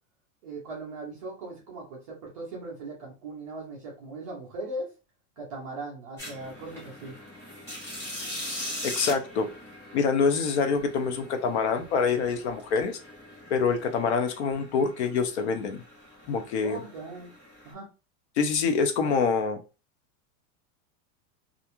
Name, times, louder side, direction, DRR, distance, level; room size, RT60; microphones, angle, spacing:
voice 1, 0.4-4.9 5.4-7.1 16.6-17.3 17.6-17.9, right 2 dB, 25° right, -3 dB, 0.4 m, -39 dB
sound 1, 6.2-17.7, left 1 dB, 5° left, 0.7 m, -41 dB
voice 2, 8.8-9.6 9.9-13.0 13.5-15.8 16.3-16.8 18.4-19.6, left 5 dB, 50° left, 6 dB, 0.5 m, -26 dB
2.4 x 2.1 x 2.9 m, 0.31 s
supercardioid pair, 180°, 44 cm